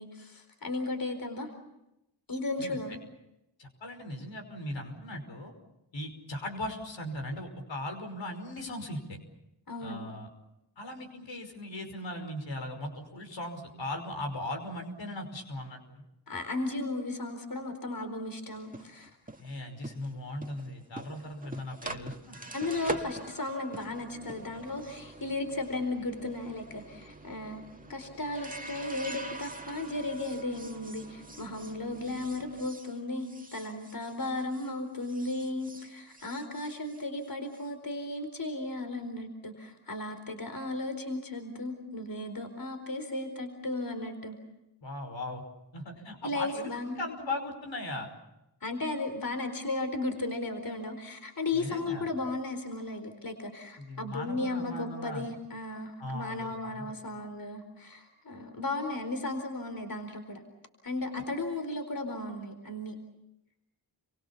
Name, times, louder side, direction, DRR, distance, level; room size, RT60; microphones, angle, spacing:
voice 1, 0.0-1.5 2.3-3.0 9.7-10.1 16.3-19.1 22.5-27.6 27.9-44.4 46.2-47.0 48.6-60.4 60.8-63.0, left 2 dB, 50° left, 7 dB, 4.5 m, -35 dB
voice 2, 3.6-5.5 5.9-9.2 9.8-10.3 10.8-16.0 19.4-22.4 44.8-45.4 45.7-48.1 51.5-52.1 53.8-55.2 56.0-56.9, left 1 dB, 75° left, 5 dB, 5.5 m, -38 dB
sound 1, 18.5-34.7 35.0-37.6, right 2 dB, 20° right, 2.0 m, -44 dB
29.0 x 24.0 x 7.2 m, 0.88 s
cardioid pair, 45°, 45 cm